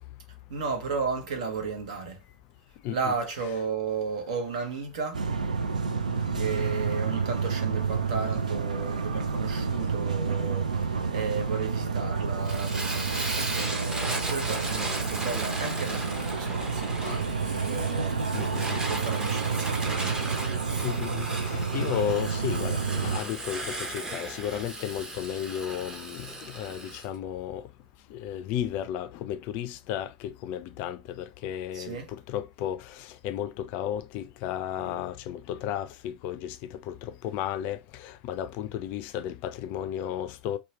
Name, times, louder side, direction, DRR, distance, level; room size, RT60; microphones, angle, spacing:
voice 1, 0.5-2.2 2.9-5.3 6.3-20.2 31.7-32.1 34.8-35.0, right 5 dB, 70° right, 0.9 m, -34 dB
voice 2, 2.8-3.1 14.0-14.1 17.0-17.4 18.3-18.8 20.4-27.6 28.1-40.6, left 10 dB, 50° left, 0.3 m, -34 dB
sound 1, 5.1-23.2, right 5 dB, 85° right, 0.4 m, -29 dB
Fire, 12.4-27.1, right 2 dB, 15° right, 0.7 m, -36 dB
2.8 x 2.2 x 2.8 m
figure-of-eight pair, 80°, 4 cm